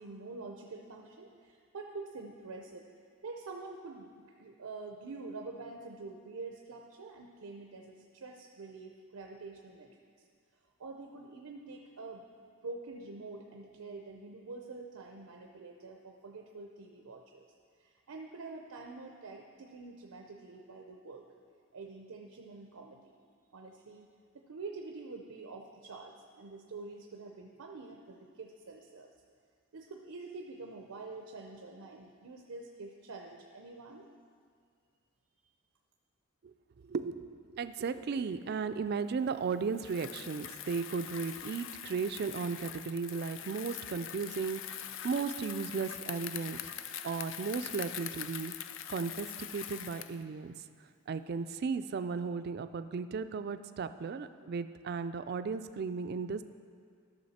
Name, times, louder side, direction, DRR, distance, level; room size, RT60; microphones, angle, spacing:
voice 1, 0.0-2.9 3.2-9.9 10.2-10.3 10.8-12.2 12.6-17.5 17.8-21.3 21.7-23.1 23.5-29.1 29.7-34.1, right 3 dB, 85° right, 2 dB, 0.6 m, -46 dB
voice 2, 36.9-44.6 45.0-46.6 47.0-48.5 48.9-50.5 51.1-56.4, right 5 dB, 45° right, 11 dB, 0.3 m, -35 dB
Bicycle, 39.7-50.2, left 10 dB, 60° left, 0.4 m, -43 dB
12.5 x 6.5 x 4.2 m, 2.1 s
head